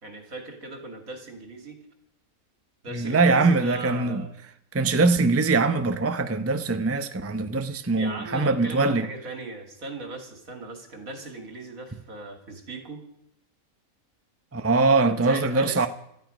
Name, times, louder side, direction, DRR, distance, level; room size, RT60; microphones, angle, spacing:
voice 1, 0.0-1.8 2.8-4.3 8.0-13.0 15.1-15.9, right 2 dB, 75° right, 3.1 m, -38 dB
voice 2, 2.9-4.2 4.7-9.1 14.5-15.9, right 3 dB, 15° right, 0.6 m, -22 dB
18.0 x 13.0 x 5.2 m
omnidirectional pair, 1.5 m